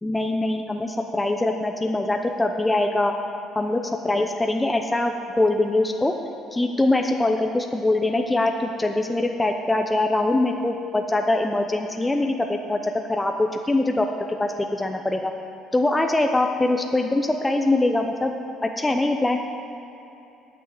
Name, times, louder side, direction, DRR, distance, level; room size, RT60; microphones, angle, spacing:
voice 1, 0.0-3.1 3.6-6.1 6.5-14.1 14.4-15.3 15.7-18.3 18.6-19.4, left 2 dB, 15° left, 4 dB, 0.7 m, -23 dB
9.2 x 6.1 x 7.3 m, 2.9 s
supercardioid pair, 70°, 0 cm